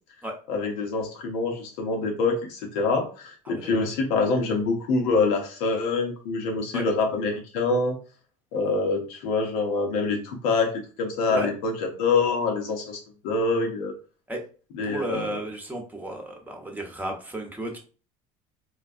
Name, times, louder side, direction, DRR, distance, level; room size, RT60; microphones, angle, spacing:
voice 1, 0.5-8.0 8.5-10.7 11.0-13.0 13.2-13.9 14.7-15.3, left 3 dB, 80° left, 3 dB, 0.9 m, -25 dB
voice 2, 14.8-17.8, right 1 dB, 10° right, 2 dB, 0.9 m, -33 dB
4.0 x 2.2 x 2.5 m, 0.37 s
hypercardioid pair, 80°, 18 cm